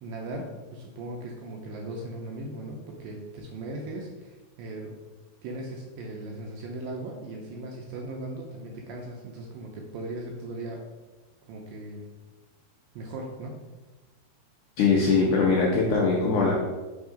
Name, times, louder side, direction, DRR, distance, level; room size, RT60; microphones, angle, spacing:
voice 1, 0.0-4.9 5.4-10.8 11.5-12.0 13.0-13.6, right 2 dB, 80° right, 0 dB, 2.1 m, -38 dB
voice 2, 14.8-16.5, left 4 dB, 80° left, -3 dB, 1.8 m, -21 dB
5.5 x 3.6 x 4.9 m, 1.2 s
omnidirectional pair, 4.6 m